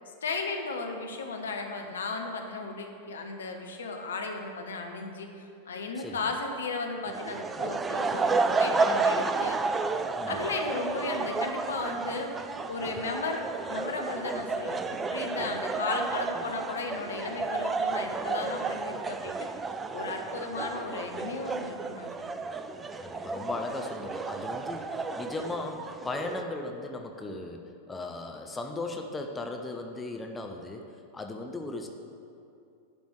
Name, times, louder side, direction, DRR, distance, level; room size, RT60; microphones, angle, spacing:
voice 1, 0.2-9.8 10.3-12.4 12.7-19.5 19.9-22.4, left 3 dB, 65° left, 4 dB, 1.0 m, -35 dB
sound 1, 7.1-26.4, right 4 dB, 15° right, 0.4 m, -31 dB
voice 2, 10.2-10.5 15.3-15.8 23.0-30.9 31.1-31.9, left 2 dB, 10° left, 3 dB, 0.8 m, -37 dB
11.5 x 5.3 x 7.5 m, 2.6 s
figure-of-eight pair, 90°, 0 cm